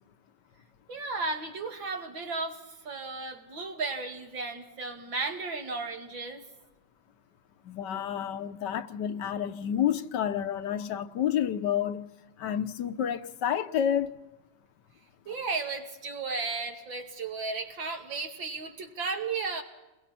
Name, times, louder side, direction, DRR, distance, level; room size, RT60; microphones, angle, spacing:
voice 1, 0.9-6.4 15.3-19.6, right 4 dB, 85° right, 3.1 m, -34 dB
voice 2, 7.6-12.1 12.4-14.1, left 9 dB, 70° left, 1.5 m, -29 dB
30.0 x 21.5 x 4.3 m
omnidirectional pair, 2.0 m